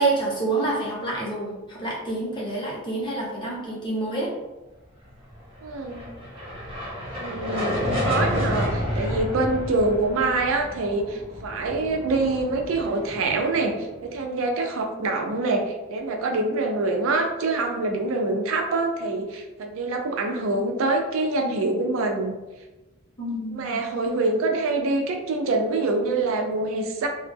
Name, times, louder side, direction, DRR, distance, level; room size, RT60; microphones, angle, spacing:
voice 1, 0.0-4.3 23.2-23.8, right 2 dB, 25° left, -4 dB, 0.6 m, -27 dB
sound 1, 5.6-14.0, left 1 dB, 25° right, 0.7 m, -30 dB
voice 2, 5.6-6.1 7.2-22.3 23.5-27.1, right 2 dB, 80° right, 3 dB, 0.4 m, -25 dB
2.0 x 2.0 x 3.3 m, 1.1 s
head